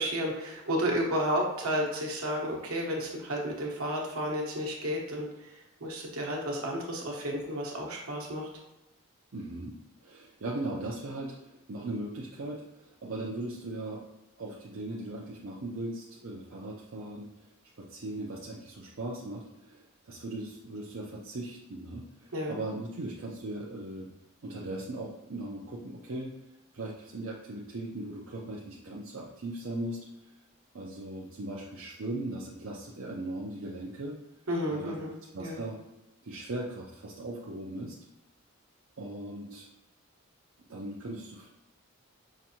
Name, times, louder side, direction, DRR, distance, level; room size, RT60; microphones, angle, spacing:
voice 1, 0.0-5.5 5.8-8.5 22.3-22.6 34.5-35.6, equal, 85° right, -1 dB, 1.0 m, -32 dB
voice 2, 9.3-14.0 14.4-17.3 17.8-24.1 24.4-26.3 26.7-30.1 30.7-34.2 34.7-35.0 35.3-35.8 36.2-38.0 39.0-39.7 40.7-41.5, right 2 dB, 65° right, -4 dB, 0.6 m, -38 dB
5.8 x 2.6 x 2.8 m, 0.97 s
head